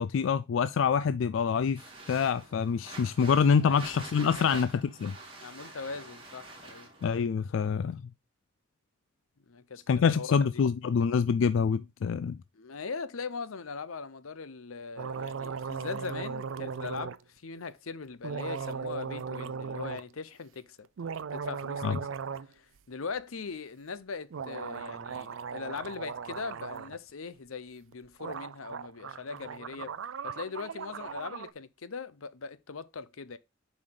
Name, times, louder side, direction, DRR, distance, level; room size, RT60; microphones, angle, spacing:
voice 1, 0.0-1.8 2.1-5.1 7.0-8.0 9.9-12.4 21.8-22.0, left 6 dB, 65° left, 0.3 m, -26 dB
fabric sounds, 1.7-7.1, right 2 dB, 25° right, 2.1 m, -46 dB
voice 2, 4.3-4.6 5.4-6.9 9.5-9.8 10.2-10.3 12.5-17.2 17.4-20.8 21.3-22.0 22.6-29.9 30.2-33.4, left 5 dB, 85° left, 0.7 m, -40 dB
sound 1, 15.0-17.2 18.2-20.0 20.8-22.5 22.8-22.9 24.3-27.0 27.9-28.0 28.2-31.5, right 6 dB, 70° right, 0.4 m, -38 dB
7.3 x 5.0 x 3.8 m
head